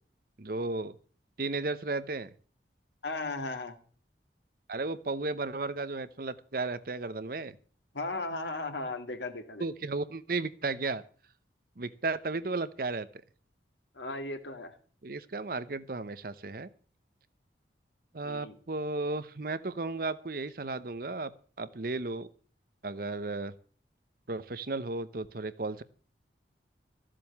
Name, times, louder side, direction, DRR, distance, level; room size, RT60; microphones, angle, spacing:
voice 1, 0.4-1.0 1.4-2.3 4.7-7.6 9.6-11.0 11.8-13.1 15.0-16.7 18.1-21.3 21.6-22.3 22.8-23.5 24.3-25.8, right 3 dB, 50° right, 14 dB, 0.8 m, -34 dB
voice 2, 3.0-3.8 7.9-9.7 13.9-14.7 18.2-18.6, left 2 dB, 80° left, 6 dB, 2.1 m, -36 dB
14.0 x 7.6 x 8.4 m, 0.43 s
head